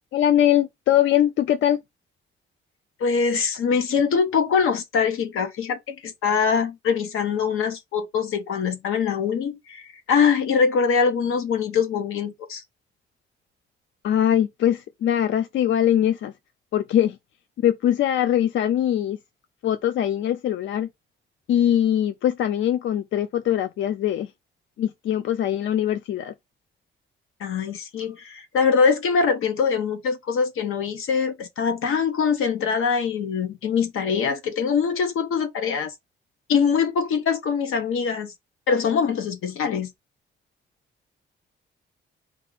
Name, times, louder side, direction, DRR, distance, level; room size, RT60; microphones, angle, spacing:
voice 1, 0.1-1.8 14.0-16.3 16.7-17.2 17.6-19.2 19.6-20.9 21.5-24.3 24.8-26.3, left 11 dB, 65° left, 0.4 m, -22 dB
voice 2, 3.0-12.6 27.4-35.9 36.5-38.3 38.7-39.9, left 6 dB, 85° left, 1.0 m, -23 dB
4.5 x 2.5 x 3.8 m
wide cardioid pair, 175°, 21 cm